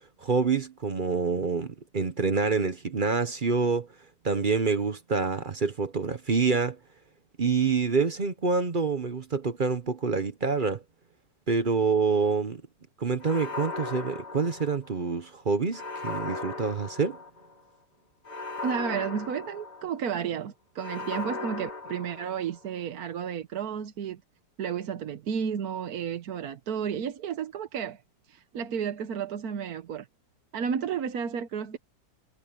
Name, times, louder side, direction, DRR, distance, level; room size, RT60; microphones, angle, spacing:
voice 1, 0.2-3.9 4.2-6.8 7.4-10.8 11.5-12.6 13.0-17.2, right 5 dB, 40° right, 0.7 m, -27 dB
sound 1, 13.2-15.1 15.7-17.5 18.2-20.1 20.8-22.7, left 3 dB, 65° left, 3.4 m, -37 dB
voice 2, 18.6-24.2 24.6-28.0 28.3-30.1 30.5-31.8, right 7 dB, 60° right, 1.3 m, -32 dB
omnidirectional pair, 2.0 m